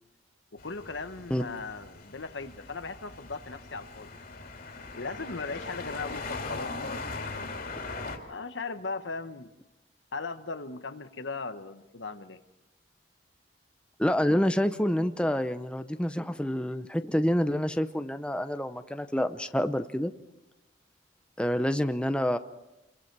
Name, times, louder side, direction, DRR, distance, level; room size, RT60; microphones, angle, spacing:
voice 1, 0.5-4.4 5.0-7.6 8.3-9.5 10.1-12.4, left 4 dB, 85° left, 9 dB, 1.3 m, -38 dB
sound 1, 0.6-8.2, left 3 dB, 55° left, 2.9 m, -40 dB
voice 2, 14.0-20.1 21.4-22.4, equal, 5° left, 9 dB, 0.7 m, -27 dB
28.0 x 23.0 x 4.7 m, 0.94 s
head